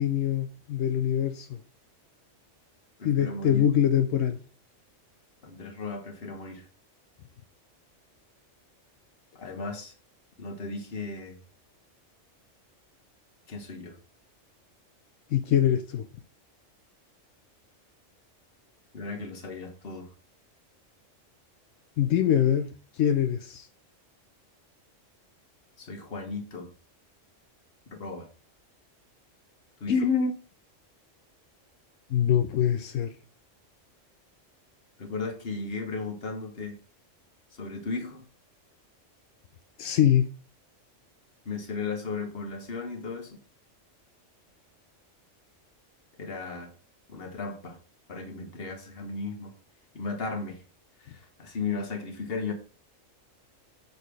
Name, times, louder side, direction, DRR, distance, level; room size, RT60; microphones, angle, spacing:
voice 1, 0.0-1.6 3.0-4.4 15.3-16.1 22.0-23.7 29.9-30.3 32.1-33.1 39.8-40.3, left 9 dB, 80° left, 1.0 m, -24 dB
voice 2, 3.0-3.6 5.4-6.7 9.3-9.9 10.4-11.4 13.5-14.0 18.9-20.1 25.8-26.7 27.9-28.3 29.8-30.0 35.0-36.8 37.5-38.3 41.4-43.4 46.2-46.7 47.1-47.8 48.1-49.5 49.9-50.6 51.0-52.5, left 4 dB, 50° left, 1.5 m, -35 dB
6.4 x 4.1 x 5.1 m
omnidirectional pair, 1.3 m